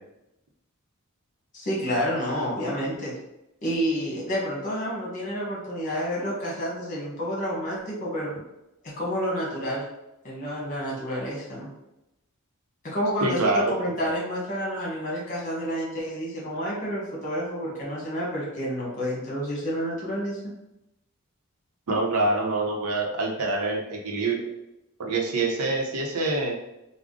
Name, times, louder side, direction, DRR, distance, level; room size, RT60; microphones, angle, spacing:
voice 1, 1.5-3.1 3.6-8.3 8.8-9.8 10.2-11.7 12.8-20.4, equal, 35° left, -5 dB, 1.3 m, -29 dB
voice 2, 13.2-13.6 14.0-14.1 21.9-24.4 25.0-26.6, right 2 dB, 85° right, 0 dB, 0.8 m, -25 dB
3.6 x 2.1 x 3.7 m, 0.91 s
head